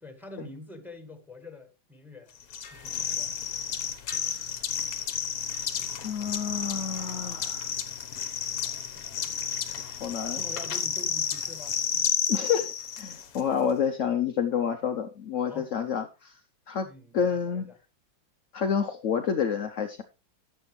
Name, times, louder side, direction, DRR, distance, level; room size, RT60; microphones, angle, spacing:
voice 1, 0.0-2.3 2.6-3.4 8.5-8.6 8.9-9.6 10.3-12.1 15.5-15.7 16.8-17.8, left 2 dB, ahead, 1.3 m, -46 dB
sound 1, 2.5-13.4, left 8 dB, 55° left, 1.2 m, -31 dB
voice 2, 4.2-4.5 6.0-7.7 9.8-10.4 12.3-16.3 16.7-16.9 17.1-17.7 18.5-20.0, left 7 dB, 80° left, 0.6 m, -29 dB
12.0 x 7.9 x 3.1 m
omnidirectional pair, 2.2 m